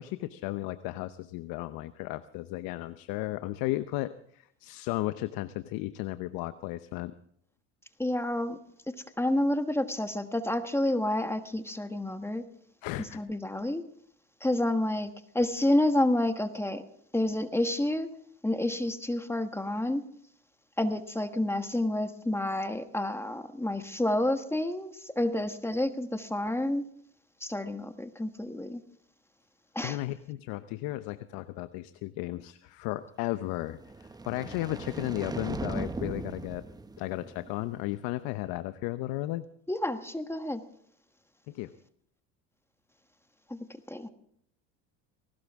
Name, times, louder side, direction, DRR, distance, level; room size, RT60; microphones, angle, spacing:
voice 1, 0.0-7.1 12.8-13.2 29.8-36.6 37.0-39.5 41.5-41.7, left 17 dB, 70° left, 12 dB, 0.9 m, -34 dB
voice 2, 8.0-8.6 8.9-12.4 13.1-13.8 14.4-16.8 17.1-18.1 18.4-20.0 20.8-26.8 27.4-28.8 29.7-30.0 39.7-40.6 43.5-44.1, left 1 dB, 5° left, 8 dB, 1.4 m, -29 dB
sound 1, 33.6-37.9, right 3 dB, 10° right, 1.0 m, -39 dB
19.5 x 18.5 x 3.6 m, 0.67 s
supercardioid pair, 95°, 36 cm